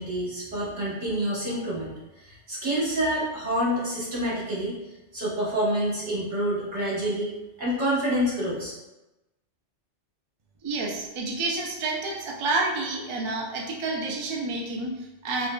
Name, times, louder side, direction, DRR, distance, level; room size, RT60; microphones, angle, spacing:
voice 1, 0.0-4.8 5.1-8.7, equal, 75° right, -8 dB, 1.6 m, -28 dB
voice 2, 10.6-15.5, right 2 dB, 50° right, -1 dB, 0.3 m, -29 dB
4.8 x 2.3 x 2.2 m, 1.0 s
omnidirectional pair, 1.2 m